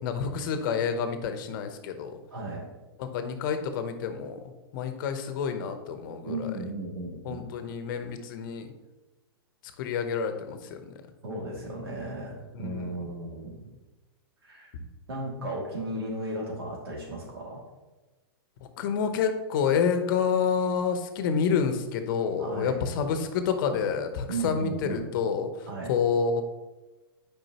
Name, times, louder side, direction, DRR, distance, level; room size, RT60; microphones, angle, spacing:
voice 1, 0.0-2.2 3.0-4.4 4.7-6.5 7.2-8.7 9.8-10.8 12.5-13.0 18.8-25.5 25.8-26.4, left 6 dB, 60° left, 8 dB, 1.0 m, -28 dB
voice 2, 2.3-2.7 6.2-7.5 11.2-13.6 14.4-14.7 15.1-17.6 22.4-22.8 24.3-25.1 25.7-26.0, right 2 dB, 80° right, -2 dB, 2.5 m, -35 dB
9.1 x 5.2 x 3.0 m, 1.1 s
hypercardioid pair, 120°, 13 cm